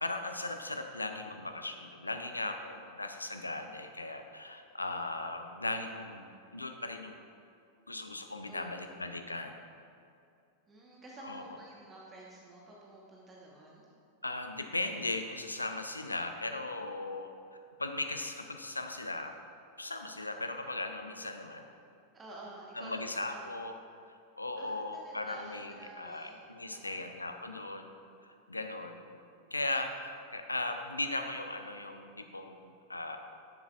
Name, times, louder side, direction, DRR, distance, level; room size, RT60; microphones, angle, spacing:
voice 1, 0.0-7.2 7.9-9.6 11.2-11.4 14.2-17.3 17.8-19.3 19.8-21.7 22.7-23.7 24.4-27.9 28.2-29.0 29.5-33.2, left 2 dB, 80° left, 6 dB, 0.5 m, -38 dB
voice 2, 8.5-9.0 10.7-13.9 22.1-23.5 24.6-27.1, right 1 dB, 20° right, -4 dB, 1.2 m, -51 dB
11.0 x 7.1 x 2.4 m, 2.5 s
figure-of-eight pair, 90°, 0 cm